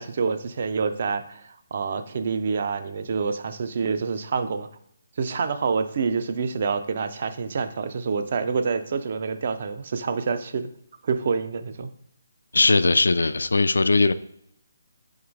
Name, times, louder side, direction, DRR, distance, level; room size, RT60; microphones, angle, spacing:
voice 1, 0.0-4.7 5.2-10.7 11.0-11.9, right 5 dB, 50° right, 9 dB, 0.4 m, -27 dB
voice 2, 12.5-14.1, left 3 dB, 80° left, 13 dB, 0.3 m, -19 dB
3.8 x 3.1 x 4.5 m, 0.71 s
figure-of-eight pair, 155°, 0 cm